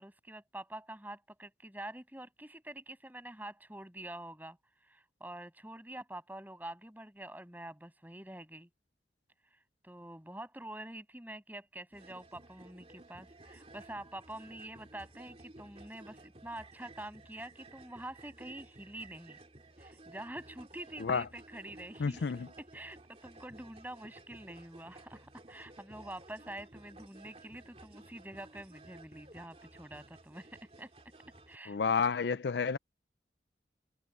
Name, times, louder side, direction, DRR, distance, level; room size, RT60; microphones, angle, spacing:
voice 1, 0.0-4.6 4.9-8.7 9.8-19.4 19.8-22.3 22.6-30.5 30.8-30.9 31.5-31.8, right 1 dB, 10° right, 7.5 m, -46 dB
sound 1, 11.9-31.6, right 2 dB, 35° right, 2.8 m, -55 dB
voice 2, 22.0-22.5 31.7-32.8, left 5 dB, 75° left, 0.5 m, -30 dB
head